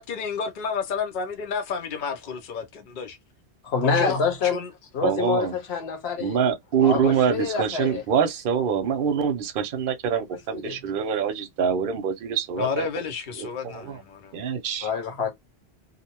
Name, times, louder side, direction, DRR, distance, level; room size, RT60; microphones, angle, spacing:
voice 1, 0.0-3.2 3.8-4.7 12.6-14.4, left 5 dB, 55° left, 0.6 m, -31 dB
voice 2, 3.6-4.6 4.9-6.4 6.8-8.0 10.5-10.8 14.8-15.3, left 5 dB, 75° left, 1.1 m, -26 dB
voice 3, 5.0-5.5 6.2-12.9 13.4-14.0 14.3-14.9, right 7 dB, 60° right, 0.7 m, -25 dB
2.6 x 2.1 x 2.8 m
omnidirectional pair, 1.1 m